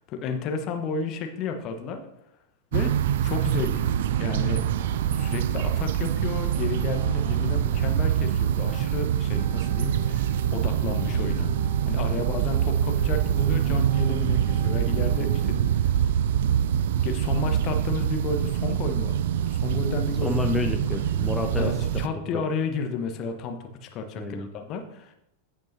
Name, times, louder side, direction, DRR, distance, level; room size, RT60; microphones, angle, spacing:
voice 1, 0.0-2.0 2.7-2.9 3.2-4.6 5.1-11.5 11.8-15.9 16.5-16.7 17.0-19.2 19.5-20.4 20.7-20.8 21.6-25.1, left 4 dB, 35° left, 5 dB, 1.1 m, -32 dB
sound 1, 2.7-22.1, right 10 dB, 55° right, 0.3 m, -25 dB
sound 2, 3.9-15.7, left 2 dB, 30° right, 1.4 m, -42 dB
voice 2, 20.2-21.7 22.3-22.4 24.2-24.5, left 4 dB, 10° left, 3 dB, 0.7 m, -29 dB
15.0 x 5.3 x 2.8 m, 0.84 s
figure-of-eight pair, 90°, 0 cm